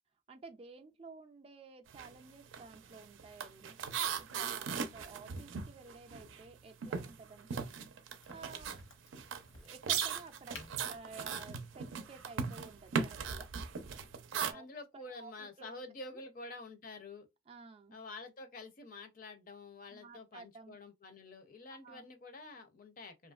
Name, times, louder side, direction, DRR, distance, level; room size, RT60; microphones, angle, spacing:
voice 1, 0.3-3.8 4.2-7.7 8.3-8.8 9.5-10.6 10.9-13.5 14.4-14.7 14.9-15.7 17.5-18.0 19.9-20.8 21.7-22.1, right 4 dB, 30° right, 0.3 m, -53 dB
sound 1, 1.9-2.2 2.4-6.5 6.8-14.5, right 6 dB, 90° right, 0.5 m, -38 dB
Crack, 8.2-13.7, left 3 dB, 75° left, 0.9 m, -57 dB
voice 2, 14.5-17.3 17.9-23.3, left 2 dB, 45° left, 0.5 m, -49 dB
2.9 x 2.4 x 2.3 m
head